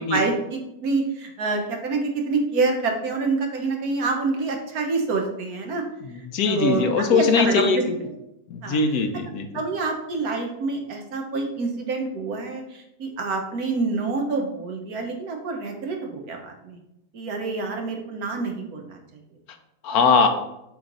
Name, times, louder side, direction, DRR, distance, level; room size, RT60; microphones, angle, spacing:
voice 1, 0.1-5.8 6.5-6.8 7.1-7.8 8.6-8.8 9.5-16.8 17.1-19.0, right 3 dB, 70° right, 2 dB, 1.4 m, -27 dB
voice 2, 6.0-8.0 8.5-9.5 19.8-20.3, left 5 dB, 75° left, 6 dB, 1.2 m, -21 dB
7.9 x 3.1 x 3.8 m, 0.86 s
omnidirectional pair, 1.7 m